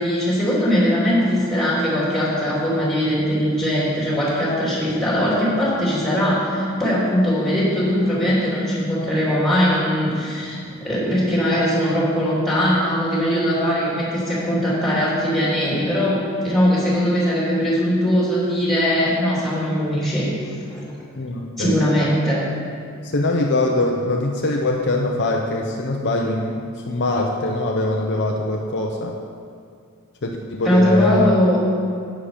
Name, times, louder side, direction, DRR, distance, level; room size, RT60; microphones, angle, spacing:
voice 1, 0.0-20.3 20.7-20.8 21.6-22.4 30.6-31.6, equal, ahead, -6 dB, 3.1 m, -20 dB
voice 2, 21.1-21.8 23.0-29.1 30.2-31.3, left 2 dB, 50° left, 1 dB, 0.7 m, -22 dB
10.5 x 8.6 x 5.1 m, 2.3 s
head